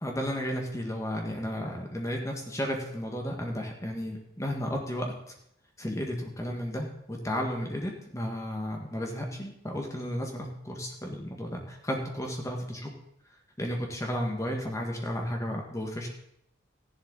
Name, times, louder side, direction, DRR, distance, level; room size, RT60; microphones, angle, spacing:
voice 1, 0.0-5.3 5.8-12.9 13.6-16.1, equal, 15° left, 1 dB, 1.9 m, -33 dB
14.0 x 11.0 x 4.1 m, 0.75 s
head